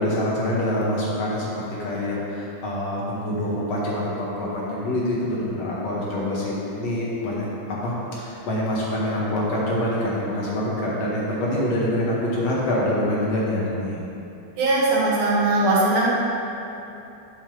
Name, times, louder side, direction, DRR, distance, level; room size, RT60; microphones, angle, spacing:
voice 1, 0.0-1.5 1.8-7.4 7.8-14.0, left 1 dB, 60° left, -6 dB, 2.6 m, -25 dB
voice 2, 14.6-16.1, right 2 dB, 70° right, -6 dB, 3.0 m, -20 dB
11.0 x 7.2 x 3.2 m, 2.9 s
omnidirectional pair, 3.4 m